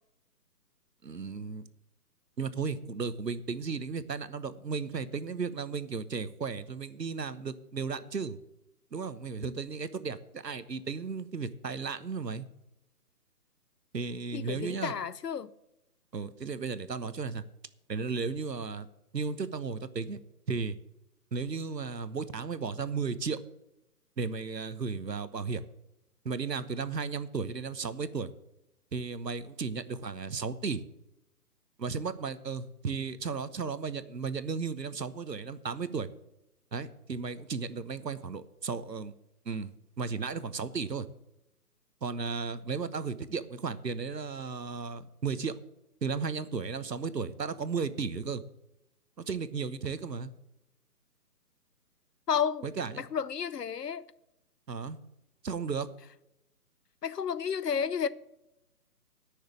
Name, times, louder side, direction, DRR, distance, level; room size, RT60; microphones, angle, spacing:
voice 1, 1.0-1.7 2.4-8.4 8.9-12.5 13.9-14.9 16.1-17.4 17.9-18.9 19.1-20.2 20.5-20.8 21.3-23.4 24.2-25.6 26.2-28.3 28.9-30.8 31.8-36.1 36.7-39.1 39.4-41.1 42.0-45.5 46.0-48.4 49.3-50.3 52.6-53.1 54.7-55.0 55.4-55.9, right 5 dB, 90° right, 1.1 m, -34 dB
voice 2, 14.3-15.5 52.3-52.6 53.0-54.0 57.0-58.1, left 7 dB, 75° left, 0.8 m, -31 dB
10.0 x 6.5 x 8.9 m
figure-of-eight pair, 150°, 48 cm